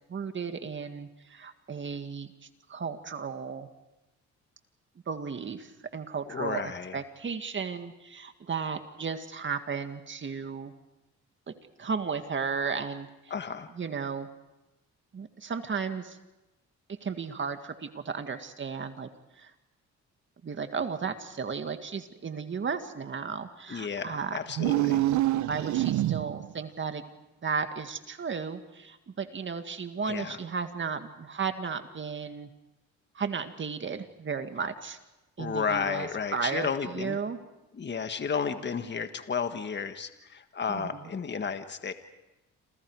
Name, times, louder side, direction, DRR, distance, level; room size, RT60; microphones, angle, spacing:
voice 1, 0.1-2.3 2.7-3.7 5.1-10.7 11.5-11.6 11.8-13.3 13.8-14.3 15.1-16.2 16.9-19.1 19.4-19.5 20.4-24.4 25.3-27.0 27.4-32.5 33.1-35.0 35.4-37.4 40.7-41.1, right 5 dB, 40° right, 8 dB, 1.9 m, -34 dB
voice 2, 6.3-7.0 13.3-13.7 23.7-25.0 30.1-30.4 35.4-37.2 37.7-41.9, left 6 dB, 35° left, 8 dB, 1.6 m, -32 dB
sound 1, 24.5-26.5, right 15 dB, 70° right, 0.7 m, -26 dB
28.5 x 27.5 x 4.8 m, 0.97 s
cardioid pair, 90°, 30 cm